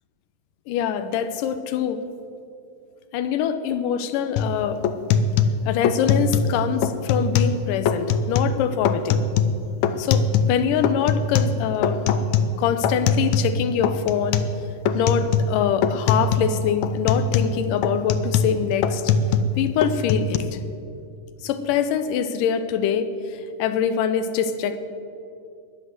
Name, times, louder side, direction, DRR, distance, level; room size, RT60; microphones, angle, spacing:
voice 1, 0.7-2.0 3.1-4.8 5.7-9.2 10.0-12.0 12.6-14.4 14.9-19.1 19.6-20.6 21.4-24.8, left 8 dB, 75° left, 10 dB, 2.3 m, -24 dB
sound 1, 4.4-4.5 4.8-6.6 6.8-7.6 7.9-8.6 8.9-10.6 10.8-13.6 13.8-14.6 14.9-15.6 15.8-16.5 16.8-19.6 19.8-20.4, left 5 dB, 90° left, 1.5 m, -22 dB
21.0 x 7.7 x 7.8 m, 2.5 s
omnidirectional pair, 4.2 m